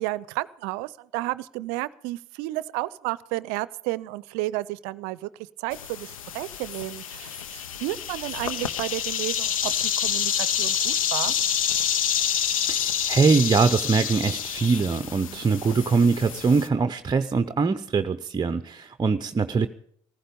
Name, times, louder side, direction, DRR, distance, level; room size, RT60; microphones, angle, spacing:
voice 1, 0.0-5.3 5.6-11.3 15.3-15.4, right 18 dB, 70° right, 20 dB, 0.5 m, -32 dB
sound 1, 5.7-16.7, left 9 dB, 90° left, 0.7 m, -28 dB
voice 2, 12.7-19.7, right 4 dB, 25° right, 11 dB, 0.6 m, -23 dB
15.5 x 15.0 x 5.3 m, 0.67 s
hypercardioid pair, 60°, 17 cm